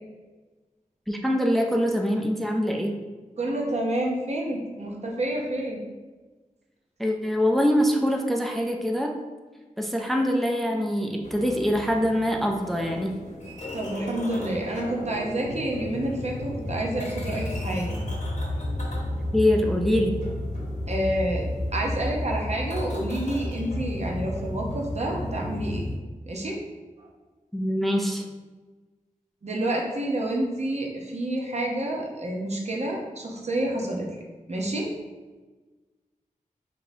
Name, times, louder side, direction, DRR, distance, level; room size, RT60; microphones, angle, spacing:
voice 1, 1.1-3.0 7.0-9.1 9.8-13.1 19.3-20.1 27.5-28.2, equal, ahead, 1 dB, 0.4 m, -24 dB
voice 2, 3.4-5.8 13.7-18.0 20.9-25.8 26.3-26.6 27.0-27.1 29.4-34.1 34.5-34.9, right 1 dB, 50° right, -1 dB, 0.8 m, -29 dB
sound 1, 11.2-26.0, left 1 dB, 55° left, 0.9 m, -32 dB
4.9 x 2.8 x 2.7 m, 1.3 s
wide cardioid pair, 80°, 14 cm